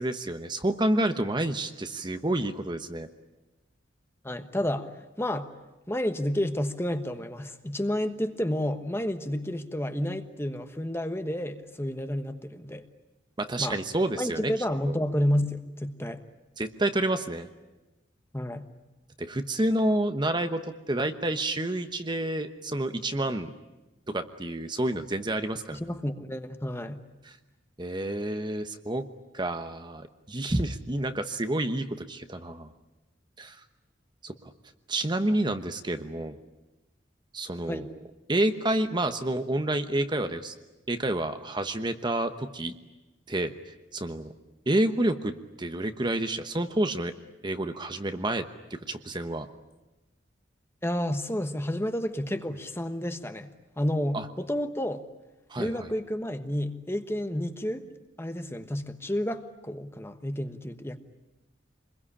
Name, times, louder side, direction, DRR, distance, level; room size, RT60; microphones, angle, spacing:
voice 1, 0.0-3.1 13.4-14.5 14.9-15.0 16.6-17.5 19.2-20.6 20.9-23.5 24.1-25.8 27.2-27.4 27.8-29.0 29.3-32.7 33.4-33.6 34.2-34.5 34.9-36.4 37.3-37.9 38.3-40.5 40.9-42.7 43.3-43.5 43.9-44.3 44.7-45.3 45.6-47.1 47.4-48.4 48.7-49.5 54.1-54.3 55.5-55.9, right 1 dB, 25° right, 8 dB, 1.1 m, -29 dB
voice 2, 4.2-4.9 5.2-5.5 5.9-12.9 13.6-13.8 14.2-16.2 18.3-18.7 25.7-27.0 37.7-37.9 50.8-53.5 53.8-55.0 55.6-57.8 58.2-61.0, left 1 dB, 15° left, 8 dB, 1.2 m, -30 dB
26.5 x 21.5 x 10.0 m, 1.1 s
head